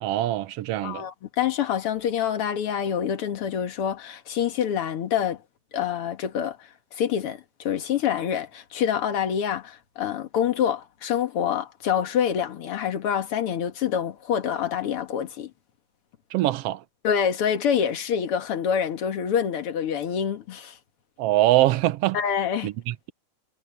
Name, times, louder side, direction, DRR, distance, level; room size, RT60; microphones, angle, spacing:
voice 1, 0.0-1.0 16.3-16.8 21.2-22.2 22.6-23.1, right 15 dB, 70° right, 1.6 m, -23 dB
voice 2, 0.8-5.4 5.7-15.5 17.0-20.8 22.1-22.7, left 8 dB, 55° left, 2.3 m, -26 dB
omnidirectional pair, 3.4 m